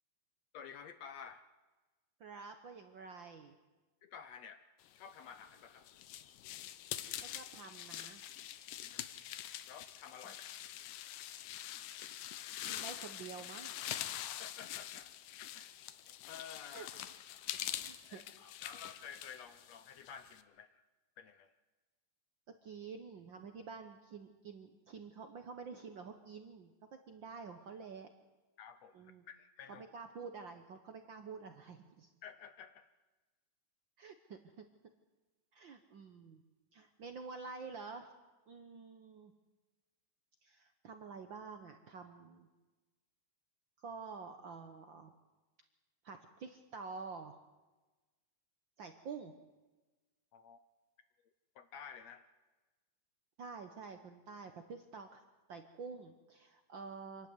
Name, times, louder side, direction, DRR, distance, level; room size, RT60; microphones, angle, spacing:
voice 1, 0.5-1.5 4.0-4.6 5.0-5.9 8.8-9.1 9.7-10.5 14.4-15.1 15.5-15.8 16.3-16.9 18.0-20.8 21.2-21.5 28.6-29.9 32.2-32.9 50.3-50.6 51.6-52.3, left 7 dB, 70° left, 10 dB, 1.7 m, -52 dB
voice 2, 2.2-3.6 7.2-8.2 12.7-14.0 16.7-16.9 17.9-18.2 22.5-28.1 28.9-29.2 29.7-32.1 34.0-34.6 35.5-36.4 36.7-38.1 38.5-39.3 40.4-42.5 43.8-45.1 46.0-47.4 48.8-49.3 53.4-55.2 55.5-57.3, right 5 dB, 75° right, 7 dB, 1.0 m, -49 dB
sound 1, 5.2-20.4, left 12 dB, 90° left, 2.5 m, -45 dB
26.5 x 12.5 x 9.6 m, 1.2 s
omnidirectional pair, 3.7 m